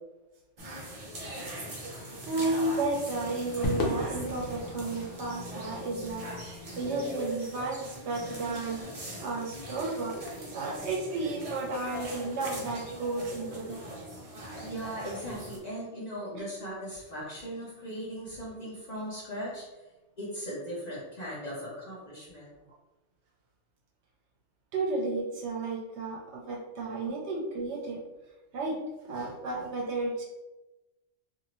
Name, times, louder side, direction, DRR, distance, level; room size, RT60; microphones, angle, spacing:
sound 1, 0.6-15.6, equal, 45° right, 0.4 m, -41 dB
voice 1, 2.2-8.8 9.2-10.2 10.5-14.0 24.7-28.0 28.5-28.8 29.0-30.2, right 2 dB, 65° right, -2 dB, 0.8 m, -33 dB
Crowd / Fireworks, 3.6-8.1, left 1 dB, 85° left, 1.0 m, -37 dB
voice 2, 14.6-19.6 20.2-22.5, equal, 40° left, -6 dB, 0.7 m, -38 dB
2.7 x 2.5 x 2.9 m, 1.1 s
omnidirectional pair, 1.3 m